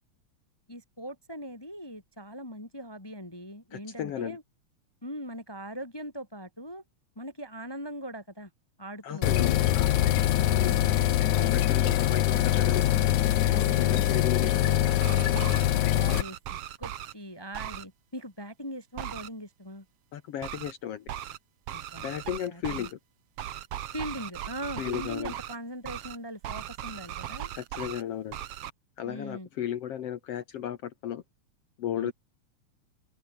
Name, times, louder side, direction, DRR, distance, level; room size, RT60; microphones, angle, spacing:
voice 1, 0.7-4.4 5.0-6.8 7.1-8.5 8.8-9.5 10.3-11.0 11.9-12.1 13.5-19.8 21.7-22.0 22.4-22.9 23.9-27.5 29.0-29.5 32.0-32.1, equal, 10° left, 1.5 m, -41 dB
voice 2, 3.7-4.4 9.0-9.6 10.5-10.9 11.3-12.9 13.7-14.5 20.1-21.1 22.0-23.0 24.8-25.3 27.5-28.4 29.0-31.2 31.8-32.1, left 10 dB, 60° left, 2.0 m, -34 dB
sound 1, 9.2-16.2, left 13 dB, 85° left, 2.6 m, -23 dB
sound 2, 14.9-15.6 16.1-17.1 17.5-17.8 19.0-19.3 20.4-20.7 21.1-21.4 21.7-22.9 23.4-25.6 25.8-26.2 26.4-28.0 28.3-28.7, right 12 dB, 60° right, 1.9 m, -38 dB
open air
omnidirectional pair, 3.3 m